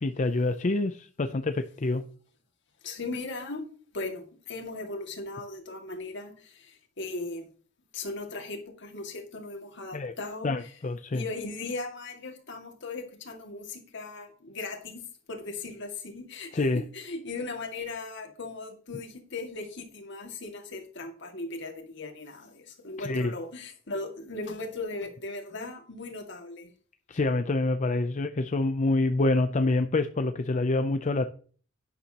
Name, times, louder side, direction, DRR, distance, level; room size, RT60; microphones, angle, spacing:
voice 1, 0.0-2.0 9.9-10.1 10.4-11.2 16.5-16.8 23.0-23.3 27.1-31.3, left 2 dB, 35° left, 9 dB, 0.5 m, -26 dB
voice 2, 2.8-3.7 3.9-7.5 7.9-10.7 11.1-26.7, left 3 dB, 60° left, 4 dB, 2.1 m, -38 dB
11.0 x 9.9 x 2.9 m, 0.43 s
head